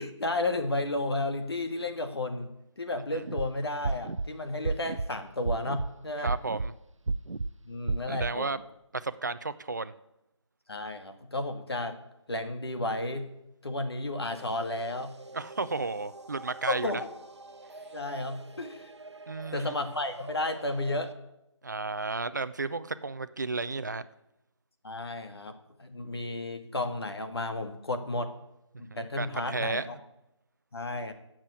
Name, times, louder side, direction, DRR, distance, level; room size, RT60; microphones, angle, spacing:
voice 1, 0.0-6.3 7.6-8.6 10.7-12.0 12.3-13.3 13.6-15.1 16.7-17.1 17.9-18.9 19.5-21.1 24.8-28.3 28.8-30.0 30.7-31.1, left 2 dB, 55° left, 6 dB, 2.0 m, -33 dB
sound 1, 3.2-3.5 3.8-4.3 4.6-5.1 5.4-5.9 6.3-6.7 7.1-7.5 7.9-8.3, right 3 dB, 80° right, 0.7 m, -30 dB
voice 2, 6.2-6.7 8.1-8.6 8.9-9.9 15.3-16.9 19.3-19.7 21.6-24.0 28.9-29.9, right 3 dB, 35° right, 13 dB, 0.6 m, -33 dB
sound 2, 14.3-21.1, right 3 dB, 60° right, 1.1 m, -47 dB
13.5 x 7.6 x 8.5 m, 0.89 s
figure-of-eight pair, 165°, 16 cm